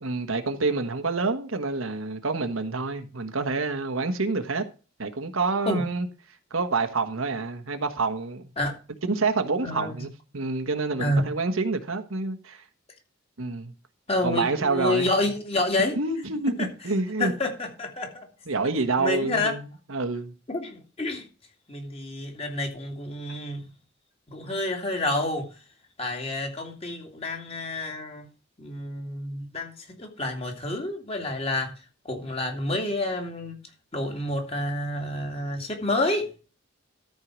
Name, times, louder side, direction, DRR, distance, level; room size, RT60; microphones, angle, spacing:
voice 1, 0.0-4.6 5.0-6.1 6.5-8.5 9.0-12.6 13.4-13.7 14.2-15.1 15.8-16.6 16.8-17.3 18.5-20.3, right 3 dB, 85° right, 1.4 m, -27 dB
voice 2, 9.6-10.0 11.0-11.3 14.1-16.0 16.6-16.7 17.2-18.3 19.0-19.5 20.5-21.2 21.7-23.7 24.3-25.5 26.0-28.2 28.6-31.7 32.0-33.6 33.9-36.3, left 2 dB, 30° left, 2.4 m, -28 dB
13.5 x 4.7 x 6.1 m
head